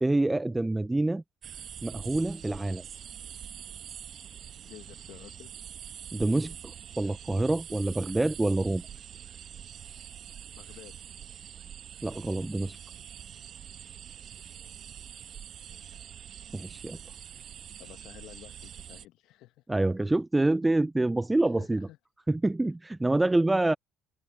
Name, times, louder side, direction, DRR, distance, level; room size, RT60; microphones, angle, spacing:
voice 1, 0.0-1.2 1.8-2.8 6.1-6.5 7.0-8.8 12.0-12.8 16.5-17.0 19.7-21.9 22.3-23.7, right 2 dB, 15° right, 0.4 m, -26 dB
sound 1, 1.4-19.0, right 9 dB, 50° right, 1.0 m, -45 dB
voice 2, 4.6-5.5 10.5-10.9 14.4-14.8 15.6-16.1 17.8-19.6 21.4-22.0, left 16 dB, 65° left, 1.4 m, -52 dB
hypercardioid pair, 60°, 0 cm